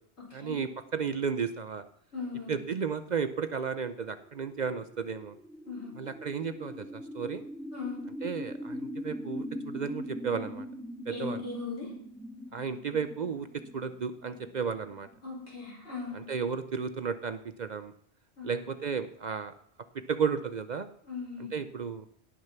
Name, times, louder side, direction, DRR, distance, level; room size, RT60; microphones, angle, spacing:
voice 1, 0.3-1.8 2.5-5.4 6.0-7.4 8.2-10.7 11.1-11.4 12.5-15.1 16.1-17.9 18.4-19.5 20.1-20.9 21.5-22.1, right 6 dB, 50° right, 11 dB, 0.6 m, -33 dB
voice 2, 2.1-2.5 5.6-5.9 7.7-8.0 11.1-11.9 15.2-16.2 18.4-18.6 21.1-21.5, left 4 dB, 80° left, -3 dB, 5.1 m, -38 dB
sound 1, 4.1-15.8, equal, ahead, 1.6 m, -42 dB
17.5 x 6.5 x 5.8 m, 0.65 s
omnidirectional pair, 1.1 m